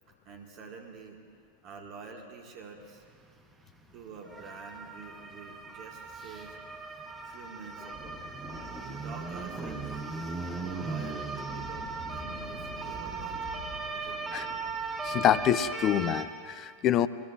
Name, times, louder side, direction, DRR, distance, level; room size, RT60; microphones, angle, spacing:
voice 1, 0.3-1.2 1.6-3.0 3.9-6.6 7.2-8.2 8.8-10.0 10.4-13.6 13.9-14.4, right 5 dB, 40° right, 1 dB, 1.9 m, -47 dB
sound 1, 3.1-3.2 3.6-3.7 4.2-16.2, right 4 dB, 15° right, 1.1 m, -37 dB
sound 2, 6.7-15.7, left 1 dB, 15° left, 2.0 m, -48 dB
voice 2, 15.0-17.1, left 11 dB, 35° left, 15 dB, 0.5 m, -26 dB
23.5 x 21.5 x 2.5 m, 2.1 s
figure-of-eight pair, 90°, 0 cm